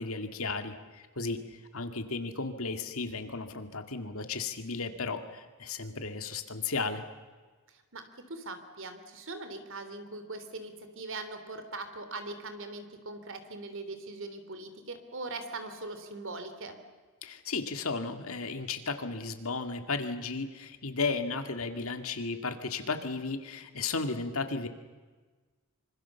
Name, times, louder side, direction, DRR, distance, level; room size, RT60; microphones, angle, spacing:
voice 1, 0.0-1.4 1.7-7.0 17.2-24.7, left 4 dB, 65° left, 7 dB, 2.2 m, -34 dB
voice 2, 7.7-16.8, right 2 dB, 60° right, 9 dB, 3.2 m, -41 dB
26.0 x 25.5 x 7.1 m, 1.4 s
head